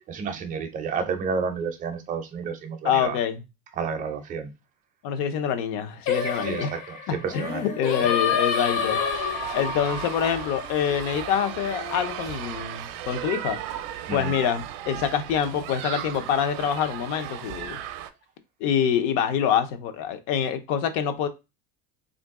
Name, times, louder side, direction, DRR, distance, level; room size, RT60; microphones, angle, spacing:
voice 1, 0.1-3.2 3.7-4.5 6.3-7.7 9.2-9.6 14.1-14.3, right 5 dB, 25° right, 0.4 m, -31 dB
voice 2, 2.8-3.4 5.0-6.7 7.1-9.0 9.5-13.6 14.1-17.8 18.6-21.3, left 8 dB, 65° left, 0.7 m, -26 dB
Singing, 6.1-11.4, left 7 dB, 80° left, 1.1 m, -28 dB
Female singing, 7.2-11.1 11.3-13.5, left 3 dB, 30° left, 0.6 m, -41 dB
sound 1, 8.6-18.1, right 11 dB, 75° right, 0.5 m, -36 dB
2.9 x 2.6 x 3.5 m
cardioid pair, 165°, 36 cm